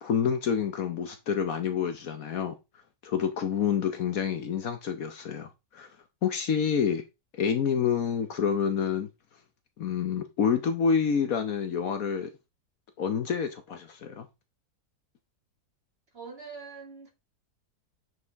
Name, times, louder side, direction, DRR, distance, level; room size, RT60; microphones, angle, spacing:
voice 1, 0.0-2.5 3.0-5.9 6.2-7.0 7.4-9.1 9.8-12.3 13.0-14.3, left 7 dB, 60° left, 1.3 m, -28 dB
voice 2, 16.1-17.1, right 5 dB, 35° right, 2.6 m, -43 dB
8.2 x 4.9 x 3.5 m
omnidirectional pair, 1.8 m